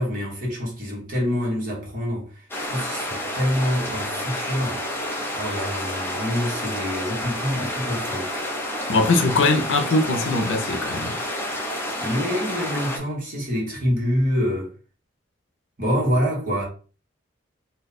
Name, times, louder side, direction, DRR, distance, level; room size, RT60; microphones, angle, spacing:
voice 1, 0.0-4.8 5.3-8.3 12.0-14.7 15.8-16.6, equal, 45° right, 1.3 m, -26 dB
sound 1, 2.5-13.0, left 1 dB, 10° left, 0.5 m, -29 dB
voice 2, 8.9-11.2, left 3 dB, 85° left, 0.5 m, -21 dB
2.7 x 2.2 x 4.0 m
head